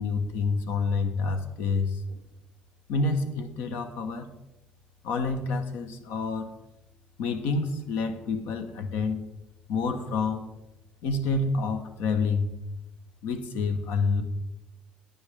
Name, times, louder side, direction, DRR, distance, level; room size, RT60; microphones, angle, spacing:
voice 1, 0.0-2.2 2.9-4.3 5.0-6.5 7.2-9.2 9.7-10.5 11.0-12.5 13.2-14.2, left 4 dB, 80° left, 8 dB, 1.2 m, -28 dB
12.0 x 8.8 x 3.7 m, 0.95 s
cardioid pair, 100°, 3 cm